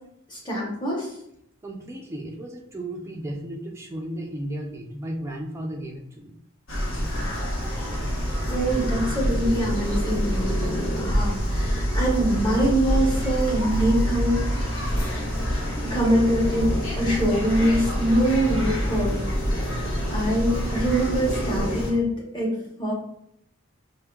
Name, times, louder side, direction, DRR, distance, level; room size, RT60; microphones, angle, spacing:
voice 1, 0.3-1.1 8.5-14.8 15.9-19.2 19.5-22.1 22.3-22.5 22.8-22.9, right 1 dB, 20° left, -4 dB, 0.9 m, -24 dB
voice 2, 1.6-6.4, right 1 dB, 15° right, 1 dB, 0.3 m, -34 dB
sound 1, 6.7-21.9, equal, 65° left, 0.8 m, -26 dB
4.3 x 2.2 x 2.3 m, 0.74 s
head